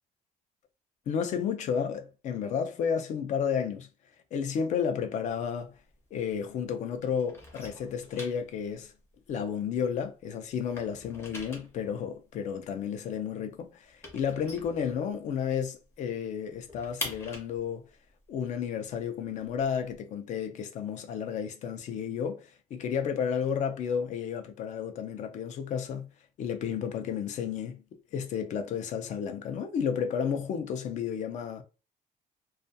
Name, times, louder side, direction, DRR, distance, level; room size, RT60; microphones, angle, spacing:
voice 1, 1.1-3.9 4.3-5.7 6.1-8.9 9.3-17.8 18.3-26.1 26.4-27.8 28.1-31.6, left 7 dB, 50° left, 0.4 m, -32 dB
sound 1, 5.2-6.7 7.0-10.2 10.5-15.5 15.8-15.9 16.2-20.0, left 2 dB, 15° left, 0.7 m, -44 dB
2.3 x 2.2 x 2.6 m
cardioid pair, 160°, 15 cm